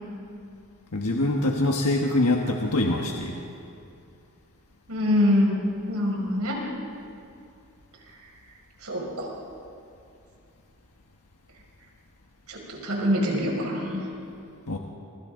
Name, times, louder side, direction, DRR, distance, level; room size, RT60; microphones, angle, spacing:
voice 1, 0.9-3.4 14.7-14.8, left 2 dB, 90° left, 1 dB, 1.4 m, -24 dB
voice 2, 4.9-6.6 8.8-9.3 12.5-14.0, left 1 dB, 85° right, -2 dB, 6.0 m, -25 dB
29.0 x 24.0 x 3.9 m, 2.5 s
head